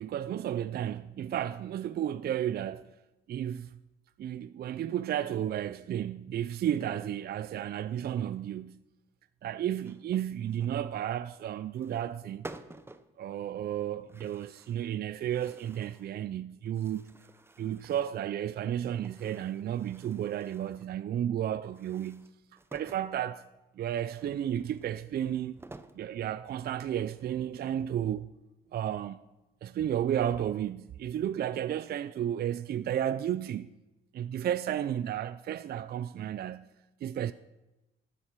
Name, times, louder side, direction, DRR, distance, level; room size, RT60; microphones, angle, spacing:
voice 1, 0.0-2.9 3.3-3.7 4.2-8.8 9.4-12.5 13.2-17.0 17.6-22.2 22.7-23.5 23.8-25.6 26.0-28.3 28.7-29.2 29.6-33.7 34.1-36.7 37.0-37.3, right 10 dB, 50° right, 0.4 m, -33 dB
sound 1, 9.8-10.8 11.7-12.2 12.4-13.1 14.1-14.9 15.2-16.1 16.6-18.3 18.9-20.9 21.7-23.1 24.1-26.0 26.6-26.7 27.1-27.9, right 2 dB, 10° right, 0.7 m, -52 dB
14.5 x 10.5 x 4.6 m
cardioid pair, 90°, 20 cm